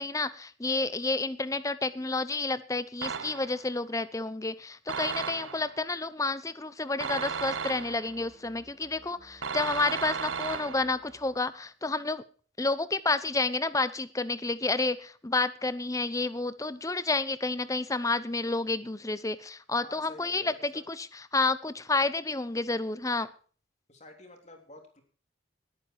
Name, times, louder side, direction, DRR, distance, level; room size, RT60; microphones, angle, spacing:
voice 1, 0.0-12.2 12.6-21.1 21.3-23.3, left 3 dB, 15° left, 15 dB, 0.8 m, -30 dB
sound 1, 3.0-3.7 4.9-5.8 7.0-8.2 9.4-11.1, right 6 dB, 85° right, 0.9 m, -35 dB
sound 2, 7.4-11.5, equal, 25° right, 1.7 m, -58 dB
voice 2, 19.7-20.8 23.9-25.0, left 2 dB, 35° left, 3 dB, 3.4 m, -50 dB
19.5 x 9.1 x 4.7 m, 0.42 s
head